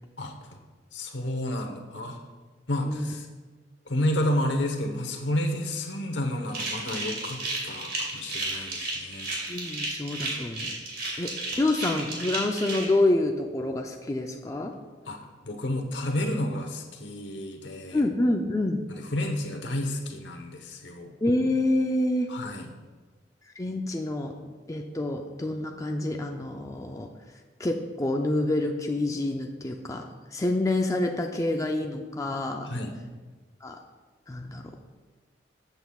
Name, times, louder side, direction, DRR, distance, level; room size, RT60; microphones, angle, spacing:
voice 1, 0.9-2.2 2.7-3.3 3.9-9.3 15.1-15.2 15.4-18.0 18.9-21.1 22.3-22.7 32.7-32.9, left 1 dB, 70° left, 4 dB, 1.1 m, -30 dB
sound 1, 6.5-12.8, right 2 dB, 55° right, 2.4 m, -33 dB
voice 2, 9.5-10.7 11.2-11.3 11.6-14.7 17.9-18.8 21.2-22.3 23.6-24.3 24.7-27.1 27.6-32.7 33.6-33.8 34.3-34.7, left 2 dB, 20° left, 3 dB, 0.4 m, -27 dB
12.5 x 8.0 x 2.4 m, 1.3 s
head